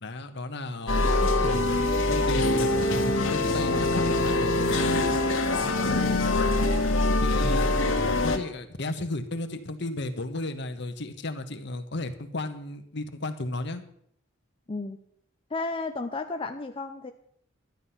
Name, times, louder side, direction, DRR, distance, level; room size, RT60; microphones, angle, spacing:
voice 1, 0.0-1.1 1.4-1.6 2.0-4.5 7.2-7.7 8.2-13.8, left 2 dB, 60° left, 8 dB, 1.2 m, -34 dB
sound 1, 0.9-8.4, left 2 dB, 90° left, 1.6 m, -24 dB
voice 2, 5.9-6.2 14.7-15.0 15.5-17.1, left 3 dB, 30° left, 5 dB, 0.6 m, -33 dB
12.0 x 9.7 x 5.7 m, 0.67 s
head